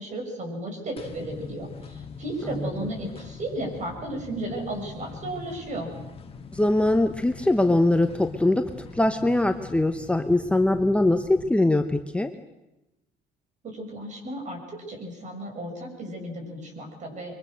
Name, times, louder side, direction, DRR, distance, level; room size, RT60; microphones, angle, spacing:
voice 1, 0.0-5.9 13.6-17.3, right 1 dB, 45° right, 3 dB, 6.6 m, -34 dB
sound 1, 1.0-11.5, left 5 dB, 35° left, 1.8 m, -42 dB
voice 2, 2.5-2.9 6.5-12.3, left 1 dB, 5° left, 7 dB, 0.9 m, -22 dB
23.0 x 22.5 x 6.4 m, 0.97 s
cardioid pair, 110°, 17 cm